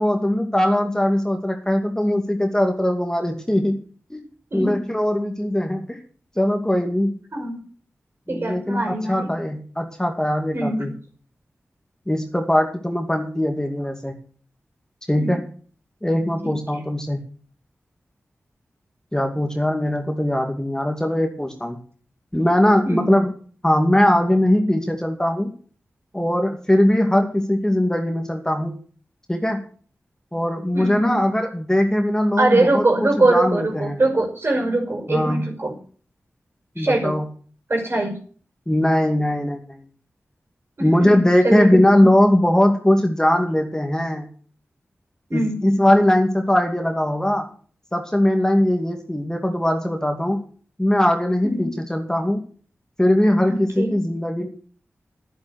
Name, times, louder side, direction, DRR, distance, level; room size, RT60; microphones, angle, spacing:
voice 1, 0.0-3.8 4.1-4.3 4.5-6.0 6.4-7.2 8.3-10.9 12.1-14.1 15.1-15.4 16.0-17.2 19.1-21.8 22.3-23.3 23.6-25.5 26.1-28.8 29.3-29.6 30.3-34.0 35.1-35.5 36.8-37.3 38.7-39.8 40.8-44.3 45.3-47.5 47.9-50.4 50.8-52.4 53.0-54.5, left 1 dB, 10° left, 3 dB, 2.5 m, -20 dB
voice 2, 7.3-7.6 8.3-9.3 10.5-10.9 15.2-15.3 16.4-16.5 22.8-23.2 30.7-31.2 32.4-35.7 36.8-37.2 37.7-38.2 40.8-41.1 41.4-41.8 45.3-45.7 51.4-51.7 53.5-53.9, right 2 dB, 50° right, 3 dB, 5.6 m, -22 dB
10.5 x 10.0 x 6.4 m, 0.43 s
cardioid pair, 40°, 5 cm